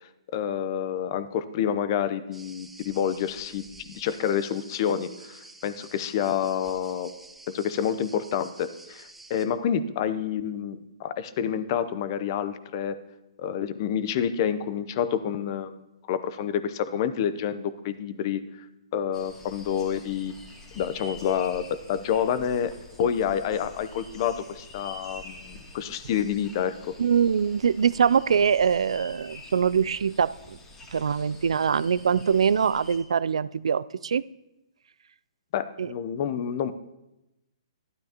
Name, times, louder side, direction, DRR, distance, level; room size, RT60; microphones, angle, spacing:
voice 1, 0.3-7.1 7.5-13.0 13.4-18.4 18.9-20.3 20.8-22.7 23.0-27.0 35.5-36.7, left 9 dB, 40° left, 14 dB, 0.7 m, -28 dB
sound 1, 2.3-9.5, right 2 dB, 5° right, 0.8 m, -49 dB
sound 2, 19.1-33.0, left 1 dB, 15° left, 2.0 m, -47 dB
voice 2, 27.0-30.6 30.9-34.2 35.8-35.9, right 7 dB, 75° right, 17 dB, 0.3 m, -23 dB
12.5 x 11.5 x 2.9 m, 0.93 s
hypercardioid pair, 135°, 3 cm